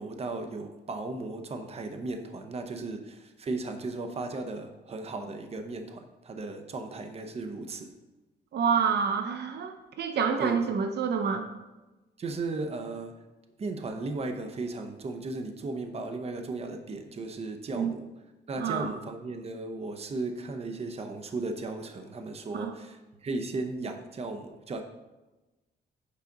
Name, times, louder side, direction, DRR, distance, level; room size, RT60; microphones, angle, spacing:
voice 1, 0.0-7.9 10.4-10.6 12.2-13.1 13.6-18.1 18.5-24.8, right 3 dB, 35° right, 6 dB, 0.8 m, -36 dB
voice 2, 8.5-11.5 17.8-17.9 18.6-18.9 22.5-22.7, right 6 dB, 65° right, 6 dB, 0.6 m, -28 dB
8.4 x 4.9 x 3.9 m, 1.1 s
cardioid pair, 120°, 18 cm